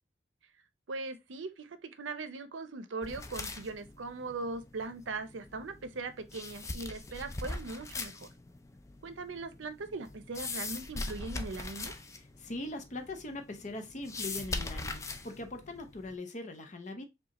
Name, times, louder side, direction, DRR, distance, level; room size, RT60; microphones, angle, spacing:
voice 1, 0.9-8.3 9.0-11.9, right 3 dB, 85° right, 0.6 m, -40 dB
sound 1, 3.0-16.2, left 3 dB, 15° left, 0.3 m, -42 dB
voice 2, 12.1-17.0, left 2 dB, 40° left, 0.7 m, -41 dB
4.9 x 2.3 x 2.9 m
head